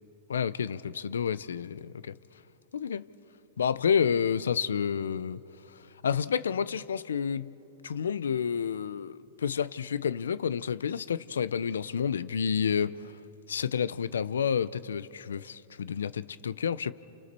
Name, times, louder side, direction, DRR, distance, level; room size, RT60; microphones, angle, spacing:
voice 1, 0.3-2.1 2.7-3.1 3.6-5.4 6.0-7.5 7.8-13.1 13.5-16.9, left 7 dB, 85° left, 0.8 m, -29 dB
29.5 x 29.0 x 6.9 m
hypercardioid pair, 120°, 0 cm